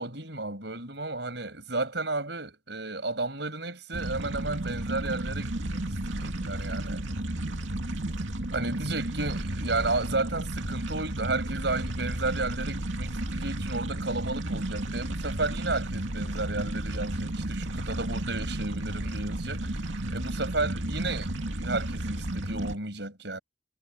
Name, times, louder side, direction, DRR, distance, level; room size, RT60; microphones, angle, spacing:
voice 1, 0.0-7.1 8.5-19.7 20.1-23.4, right 2 dB, 65° right, 6.7 m, -33 dB
sound 1, 3.9-22.8, right 1 dB, 85° right, 2.5 m, -33 dB
head